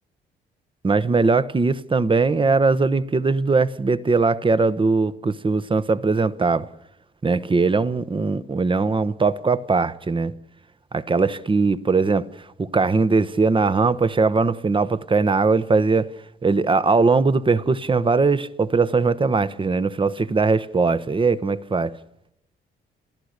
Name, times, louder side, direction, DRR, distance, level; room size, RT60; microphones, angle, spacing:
voice 1, 0.8-6.7 7.2-10.3 10.9-12.3 12.6-16.1 16.4-22.0, right 4 dB, 25° right, 1.1 m, -20 dB
29.0 x 14.5 x 6.7 m
cardioid pair, 90°, 20 cm